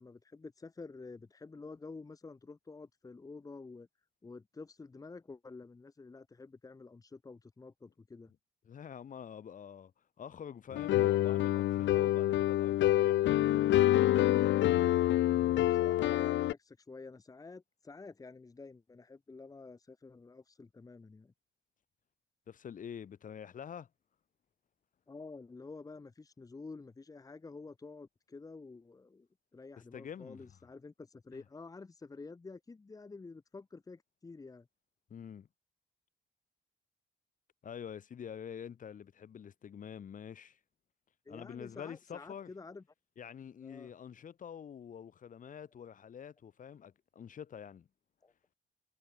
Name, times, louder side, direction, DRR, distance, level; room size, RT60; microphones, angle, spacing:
voice 1, 0.0-3.9 4.2-8.3 15.3-21.3 25.1-34.7 41.3-42.8 43.6-43.9 48.2-48.3, left 3 dB, 20° left, 2.1 m, -50 dB
voice 2, 8.7-9.9 10.2-13.7 22.5-23.9 29.9-30.6 31.3-31.4 35.1-35.5 37.6-40.6 41.3-42.5 43.2-47.9, left 8 dB, 45° left, 3.9 m, -46 dB
sound 1, 10.7-16.5, left 14 dB, 90° left, 1.0 m, -27 dB
cardioid pair, 165°, 19 cm